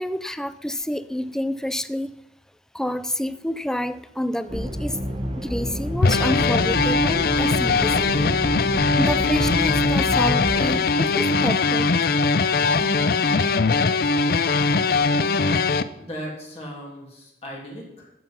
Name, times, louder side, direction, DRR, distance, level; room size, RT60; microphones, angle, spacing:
voice 1, 0.0-2.1 2.7-5.0 5.4-8.3 9.0-12.1 12.8-13.6, equal, 5° left, 13 dB, 0.4 m, -29 dB
sound 1, 4.5-10.6, equal, 30° right, 1.3 m, -29 dB
sound 2, 6.0-15.8, left 4 dB, 60° left, 0.5 m, -20 dB
voice 2, 16.0-18.1, equal, 35° left, -2 dB, 2.7 m, -37 dB
11.5 x 8.0 x 5.6 m, 0.90 s
head